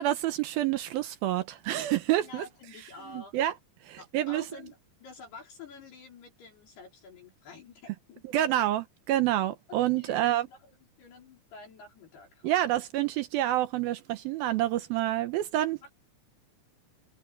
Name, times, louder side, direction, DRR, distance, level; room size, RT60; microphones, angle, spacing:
voice 1, 0.0-2.4 3.1-3.5 3.9-4.4 8.3-10.5 12.4-15.8, right 13 dB, 80° right, 2.1 m, -28 dB
voice 2, 2.2-3.4 4.0-8.6 9.7-12.7 15.8-15.9, left 4 dB, 60° left, 5.7 m, -49 dB
omnidirectional pair, 5.3 m